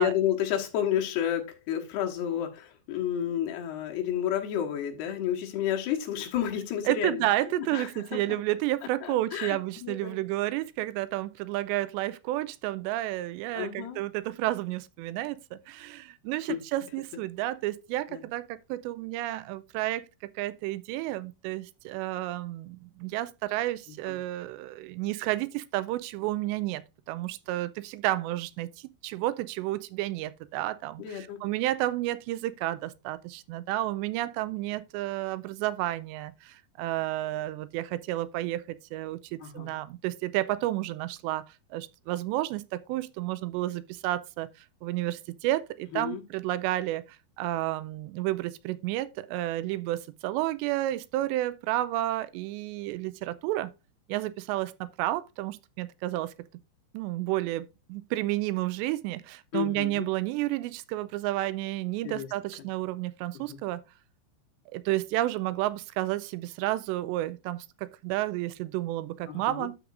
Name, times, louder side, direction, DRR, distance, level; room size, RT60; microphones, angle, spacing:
voice 1, 0.0-7.2 7.6-8.2 9.0-10.2 13.5-14.0 16.5-16.6 18.1-18.2 24.1-24.2 31.0-31.4 39.4-39.8 45.9-46.2 59.5-60.1 62.0-62.3 63.3-63.6 69.3-69.7, left 10 dB, 75° left, 3.1 m, -31 dB
voice 2, 6.9-20.1 20.4-26.8 27.1-41.4 41.7-44.5 44.8-53.7 54.1-56.3 56.9-63.8 64.7-69.8, right 16 dB, 85° right, 2.7 m, -31 dB
12.5 x 5.1 x 2.5 m
omnidirectional pair, 5.1 m